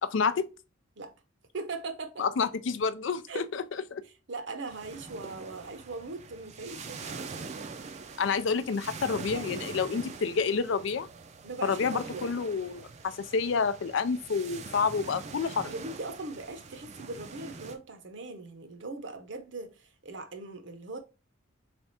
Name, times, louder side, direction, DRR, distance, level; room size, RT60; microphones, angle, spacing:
voice 1, 0.0-0.4 2.2-3.6 3.9-4.0 8.2-11.1 11.6-15.7, left 5 dB, 65° left, 0.4 m, -29 dB
voice 2, 1.5-2.3 3.3-3.5 4.0-7.8 11.4-12.3 15.6-21.0, right 3 dB, 65° right, 0.8 m, -40 dB
sound 1, 4.7-17.7, right 4 dB, 35° right, 0.5 m, -44 dB
3.4 x 3.4 x 4.1 m
head